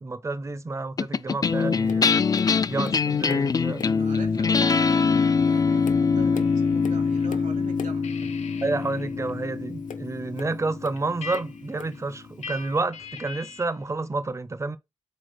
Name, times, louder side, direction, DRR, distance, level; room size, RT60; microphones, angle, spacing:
voice 1, 0.0-2.2 2.7-4.0 8.6-14.8, right 3 dB, 20° right, 0.6 m, -30 dB
sound 1, 1.0-11.6, left 5 dB, 30° left, 0.3 m, -24 dB
Tap, 1.9-2.1 2.4-3.5 3.8-4.1 4.8-4.9 5.5-8.1 9.8-11.0 11.3-12.0 12.8-12.9, left 8 dB, 85° left, 1.0 m, -41 dB
voice 2, 4.0-8.4, right 5 dB, 80° right, 2.0 m, -43 dB
sound 2, 4.8-7.3 7.6-13.8, left 6 dB, 60° left, 0.8 m, -44 dB
5.2 x 4.1 x 6.0 m
wide cardioid pair, 135°, 13 cm